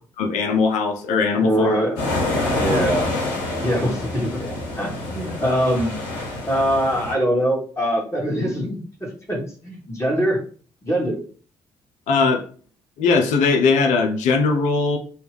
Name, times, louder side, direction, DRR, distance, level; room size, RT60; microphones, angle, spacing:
voice 1, 0.2-1.7 12.1-12.4 13.0-15.0, left 4 dB, 70° left, 3 dB, 0.5 m, -19 dB
voice 2, 1.4-2.0 2.5-3.1 3.6-6.0 6.5-10.4 10.8-11.2, equal, 20° left, -2 dB, 1.4 m, -23 dB
sound 1, 2.0-7.1, left 2 dB, 90° left, 0.9 m, -26 dB
2.8 x 2.3 x 3.3 m, 0.42 s
hypercardioid pair, 45°, 13 cm